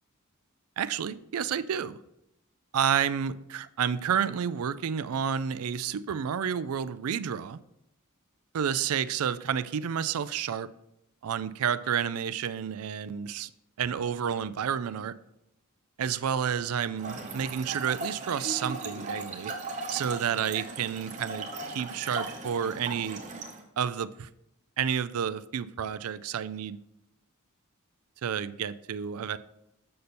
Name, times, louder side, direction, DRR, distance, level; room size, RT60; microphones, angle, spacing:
voice 1, 0.8-2.0 2.7-7.6 8.5-10.7 11.2-13.5 13.8-15.1 16.0-19.5 19.9-23.2 23.8-24.3 24.8-26.8 28.2-29.4, right 8 dB, 80° right, 0.4 m, -30 dB
Trickle dribble / Fill (with liquid), 17.0-23.6, right 3 dB, 35° right, 1.1 m, -38 dB
6.7 x 6.6 x 4.3 m
head